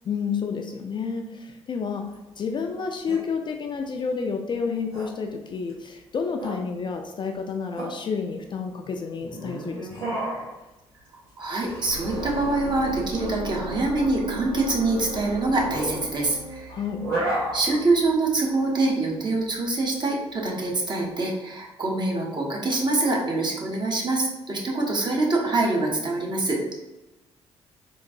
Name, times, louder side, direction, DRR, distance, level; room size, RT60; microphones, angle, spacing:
voice 1, 0.1-2.1 2.4-10.2 16.7-17.0, left 5 dB, 35° left, 3 dB, 0.3 m, -30 dB
sound 1, 1.8-21.1, right 1 dB, 70° right, 1.5 m, -35 dB
voice 2, 11.4-16.7 17.5-26.6, right 2 dB, 30° right, -1 dB, 0.9 m, -25 dB
sound 2, 11.9-17.9, right 2 dB, 90° right, 0.5 m, -35 dB
3.7 x 2.5 x 2.6 m, 1.0 s
figure-of-eight pair, 45°, 15 cm